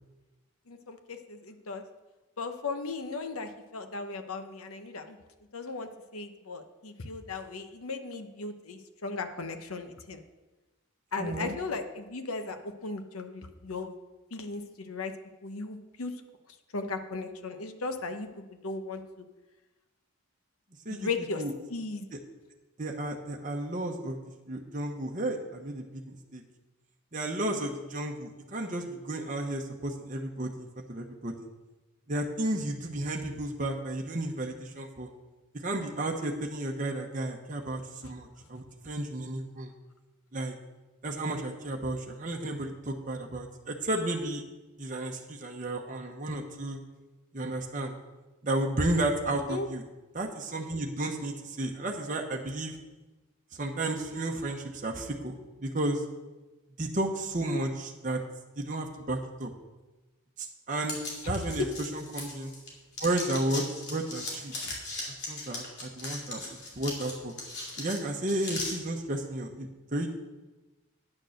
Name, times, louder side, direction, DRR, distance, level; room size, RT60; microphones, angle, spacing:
voice 1, 0.7-1.8 2.4-5.2 5.5-10.2 11.1-13.9 14.3-15.1 15.4-16.1 16.7-19.3 20.9-21.4 21.7-22.1 38.0-38.1 49.3-49.7 61.2-61.3 61.6-61.7, left 3 dB, 90° left, 7 dB, 1.0 m, -36 dB
voice 2, 11.2-11.5 20.8-21.1 21.4-21.5 22.1-22.2 22.8-24.2 24.5-26.4 27.1-31.5 32.1-35.1 35.5-39.7 40.3-40.5 41.0-44.4 44.8-46.8 47.3-48.0 48.4-49.8 50.1-52.8 53.5-55.4 55.6-56.0 56.8-58.2 58.6-59.5 60.4-61.0 61.2-61.6 61.9-62.5 63.0-64.7 65.3-67.3 67.8-70.2, right 1 dB, 35° right, 1 dB, 0.9 m, -33 dB
sound 1, 60.8-62.7 62.9-68.7, left 2 dB, 50° left, 2.8 m, -38 dB
9.7 x 6.7 x 6.4 m, 1.1 s
head